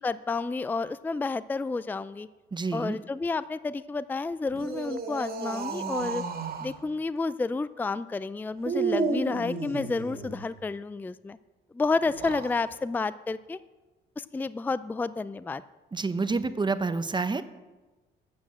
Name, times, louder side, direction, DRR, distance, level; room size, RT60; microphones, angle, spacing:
voice 1, 0.0-2.3 2.7-6.2 6.6-11.4 11.7-13.6 14.2-15.6, left 3 dB, 10° left, 16 dB, 0.3 m, -30 dB
voice 2, 2.5-3.0 15.9-17.4, right 4 dB, 20° right, 11 dB, 0.7 m, -28 dB
sound 1, 4.5-6.8 8.6-10.4 12.0-12.6, right 4 dB, 50° right, 2.0 m, -32 dB
9.6 x 8.6 x 7.3 m, 1.2 s
cardioid pair, 90°, 20 cm